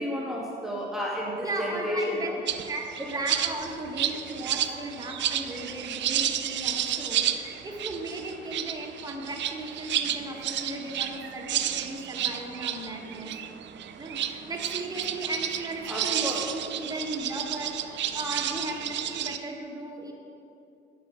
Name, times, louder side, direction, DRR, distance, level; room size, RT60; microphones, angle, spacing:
voice 1, 0.0-2.2 15.9-16.4, equal, ahead, -5 dB, 2.0 m, -31 dB
voice 2, 1.4-2.3 2.7-13.3 14.0-20.1, right 2 dB, 20° right, -1 dB, 1.7 m, -36 dB
sound 1, 2.5-19.4, right 10 dB, 65° right, 0.5 m, -31 dB
8.6 x 6.9 x 6.1 m, 2.7 s
cardioid pair, 90°, 20 cm